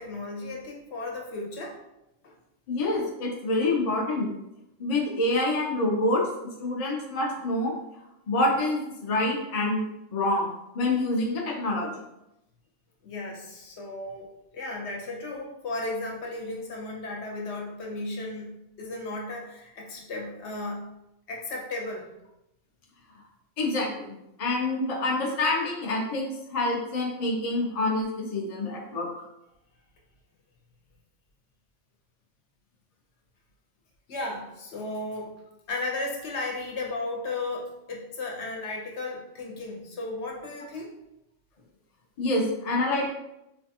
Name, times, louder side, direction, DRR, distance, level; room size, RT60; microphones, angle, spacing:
voice 1, 0.0-1.8 2.2-2.3 13.0-14.3 14.5-20.9 21.3-22.1 34.1-35.3 35.7-40.9, left 2 dB, 65° left, -1 dB, 1.0 m, -35 dB
voice 2, 2.7-4.3 4.8-6.3 6.6-7.7 8.3-9.8 10.1-12.0 23.6-29.1 42.2-43.1, left 2 dB, 45° left, 0 dB, 0.5 m, -27 dB
4.1 x 2.2 x 2.7 m, 0.87 s
omnidirectional pair, 1.3 m